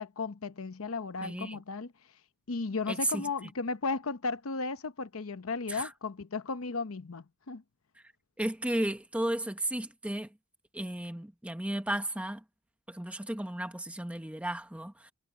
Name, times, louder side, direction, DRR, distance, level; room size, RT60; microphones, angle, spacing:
voice 1, 0.0-1.9 2.5-7.6, left 4 dB, 75° left, 0.9 m, -35 dB
voice 2, 1.2-1.6 2.9-3.3 5.7-5.9 8.4-10.3 10.7-12.4 12.9-15.1, right 1 dB, 5° right, 0.9 m, -34 dB
head